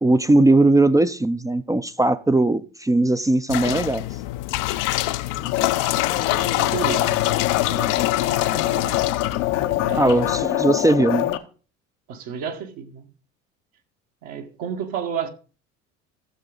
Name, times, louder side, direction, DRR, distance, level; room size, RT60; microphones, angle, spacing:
voice 1, 0.0-4.1 10.0-11.3, right 2 dB, 10° right, 0.5 m, -19 dB
sound 1, 3.5-10.4, left 17 dB, 55° left, 0.7 m, -26 dB
sound 2, 5.4-11.4, left 14 dB, 75° left, 1.0 m, -24 dB
voice 2, 5.9-9.0 9.8-10.3 12.1-13.1 14.2-15.3, right 7 dB, 60° right, 1.7 m, -33 dB
15.5 x 6.7 x 3.9 m
hypercardioid pair, 65°, 39 cm